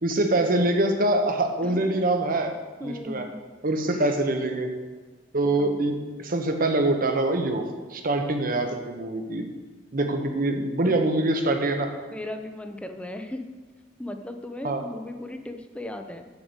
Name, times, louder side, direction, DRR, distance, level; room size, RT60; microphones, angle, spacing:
voice 1, 0.0-2.5 2.8-3.3 3.6-4.7 5.3-9.4 9.9-11.9 14.6-14.8, right 2 dB, 50° right, 5 dB, 1.1 m, -24 dB
voice 2, 1.6-2.0 2.8-3.4 5.6-5.8 10.8-11.0 12.1-13.4 14.0-16.2, left 1 dB, 5° left, 6 dB, 0.7 m, -36 dB
7.2 x 6.7 x 8.0 m, 1.3 s
head